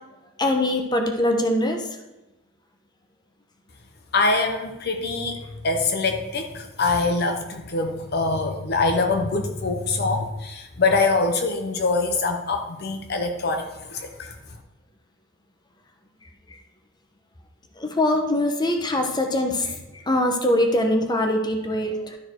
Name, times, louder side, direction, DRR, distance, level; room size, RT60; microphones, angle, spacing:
voice 1, 0.4-1.9 17.8-22.2, left 1 dB, 20° left, 4 dB, 0.9 m, -23 dB
voice 2, 4.1-14.3, left 3 dB, 55° left, 5 dB, 0.8 m, -24 dB
12.0 x 4.5 x 4.5 m, 1.0 s
head